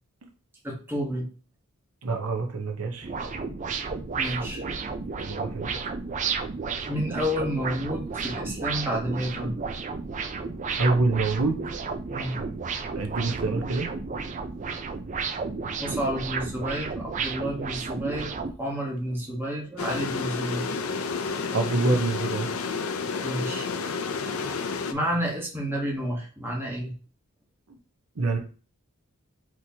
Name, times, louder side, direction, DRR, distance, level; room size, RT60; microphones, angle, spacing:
voice 1, 0.6-1.3 4.2-4.6 6.9-9.5 12.1-12.4 15.8-20.7 23.2-23.7 24.9-26.9, equal, 10° right, -2 dB, 1.2 m, -30 dB
voice 2, 2.0-3.1 5.2-5.7 10.7-11.6 12.3-12.6 12.9-13.9 21.5-22.5 28.2-28.4, right 3 dB, 85° right, 4 dB, 0.8 m, -26 dB
sound 1, 3.0-18.5, right 5 dB, 35° right, 0.4 m, -32 dB
sound 2, 19.8-24.9, left 4 dB, 75° left, 0.5 m, -30 dB
6.0 x 3.0 x 2.8 m, 0.39 s
head